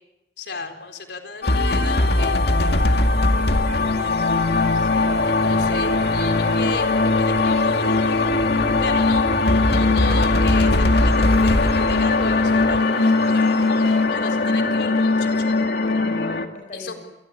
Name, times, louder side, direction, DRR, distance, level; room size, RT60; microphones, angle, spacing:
voice 1, 0.4-2.8 4.7-8.2 8.8-9.2 9.6-15.5 16.7-17.0, left 4 dB, 80° left, 5 dB, 4.2 m, -35 dB
sound 1, 1.4-16.5, left 2 dB, 65° left, 2.2 m, -19 dB
sound 2, 1.5-12.8, equal, 5° left, 1.7 m, -33 dB
voice 2, 3.3-4.5 16.0-17.0, left 2 dB, 45° left, 3 dB, 4.5 m, -42 dB
27.0 x 20.0 x 8.7 m, 0.97 s
head